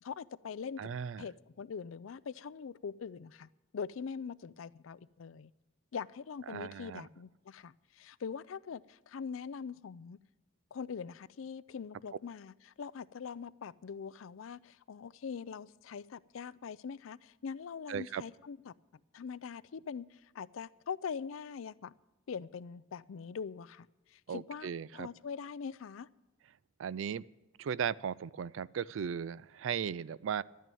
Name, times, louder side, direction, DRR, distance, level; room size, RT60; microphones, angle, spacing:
voice 1, 0.0-0.9 1.2-5.5 5.9-10.2 10.7-18.7 19.1-21.9 22.3-26.1, left 6 dB, 75° left, 0.4 m, -43 dB
voice 2, 0.8-1.3 6.5-7.1 17.9-18.2 24.3-25.1 26.8-27.2 27.6-30.4, right 7 dB, 70° right, 0.4 m, -37 dB
12.5 x 9.3 x 9.1 m
head